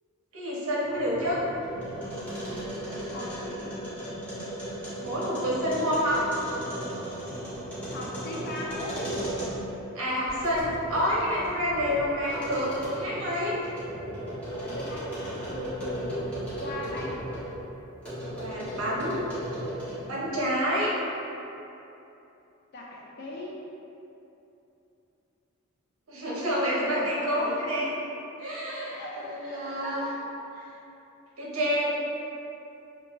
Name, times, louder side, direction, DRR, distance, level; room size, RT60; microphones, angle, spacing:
voice 1, 0.3-1.4 5.0-6.2 9.9-13.5 18.3-19.2 20.1-20.9 26.1-27.9 28.4-30.0 31.4-31.9, equal, 65° right, -6 dB, 0.7 m, -28 dB
sound 1, 0.8-9.8 10.2-17.5 18.0-20.1, right 1 dB, 5° left, 0.7 m, -36 dB
voice 2, 3.1-3.7 7.9-9.3 14.6-16.2 16.6-17.3 22.7-23.6 26.8-27.9 28.7-30.2 30.5-30.8, left 1 dB, 50° left, -3 dB, 0.3 m, -39 dB
2.5 x 2.2 x 2.9 m, 2.9 s
head